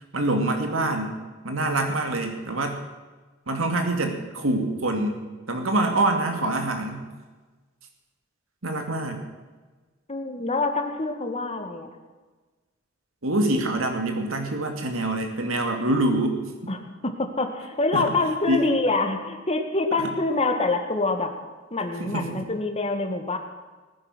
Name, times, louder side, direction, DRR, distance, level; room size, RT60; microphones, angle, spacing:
voice 1, 0.1-1.2 1.4-2.8 3.5-5.2 5.5-7.1 8.6-9.2 13.2-16.7 17.9-18.1 18.5-18.7 20.0-20.1 22.0-22.4, right 2 dB, 85° right, 4 dB, 2.2 m, -25 dB
voice 2, 10.1-12.0 16.7-21.3 21.7-23.4, left 3 dB, 30° left, 5 dB, 1.8 m, -26 dB
20.0 x 10.0 x 6.2 m, 1.3 s
head